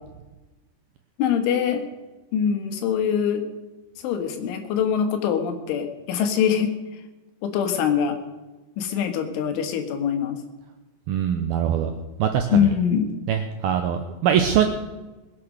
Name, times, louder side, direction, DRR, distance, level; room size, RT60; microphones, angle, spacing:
voice 1, 1.2-1.9 2.3-3.4 4.0-6.7 7.4-8.2 8.8-10.4 12.5-13.1, left 8 dB, 90° left, 6 dB, 4.0 m, -23 dB
voice 2, 11.1-11.9 12.2-12.7 13.3-14.7, right 9 dB, 80° right, 6 dB, 2.2 m, -22 dB
20.5 x 8.6 x 6.4 m, 1.1 s
omnidirectional pair, 5.3 m